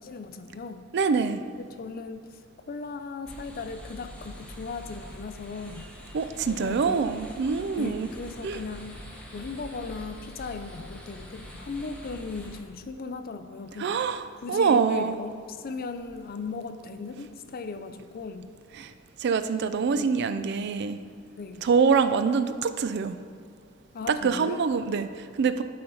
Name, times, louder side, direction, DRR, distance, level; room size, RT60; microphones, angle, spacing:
voice 1, 0.0-0.9 1.6-2.4 2.7-5.9 6.4-7.1 7.7-8.9 9.3-14.0 14.4-18.5 19.9-20.2 21.4-21.7 23.9-24.6, left 4 dB, 50° left, 9 dB, 0.4 m, -37 dB
voice 2, 0.9-1.4 6.1-8.1 8.4-8.6 13.8-15.2 18.8-18.9 19.2-21.0 21.6-23.2 24.1-25.6, right 5 dB, 55° right, 11 dB, 0.4 m, -25 dB
sound 1, 3.3-12.6, equal, 5° left, 1.0 m, -44 dB
12.5 x 4.3 x 3.8 m, 2.2 s
head